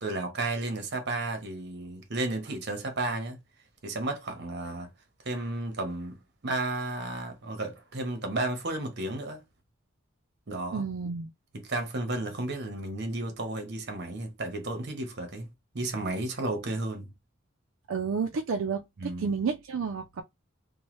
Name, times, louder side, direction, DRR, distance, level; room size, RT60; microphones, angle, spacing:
voice 1, 0.0-3.4 3.8-4.9 5.2-6.2 6.4-9.4 10.5-10.8 11.5-15.5 15.7-17.1 19.0-19.3, right 2 dB, 55° right, 0.9 m, -33 dB
voice 2, 10.7-11.3 17.9-20.2, right 5 dB, 85° right, 0.4 m, -31 dB
3.0 x 2.2 x 3.0 m
head